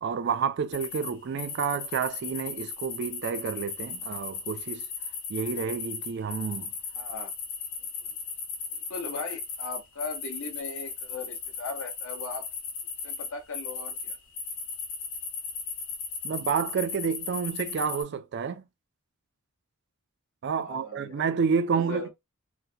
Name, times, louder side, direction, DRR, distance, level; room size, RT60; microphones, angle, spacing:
voice 1, 0.0-4.9 5.3-6.7 16.2-18.6 20.4-22.1, right 6 dB, 55° right, 0.4 m, -29 dB
sound 1, 0.7-1.1 1.4-18.0, left 5 dB, 85° left, 1.2 m, -36 dB
voice 2, 6.9-7.3 8.0-8.1 8.7-12.5 13.0-14.2 20.6-21.2 21.7-22.1, left 4 dB, 70° left, 0.9 m, -38 dB
3.9 x 2.2 x 2.7 m
head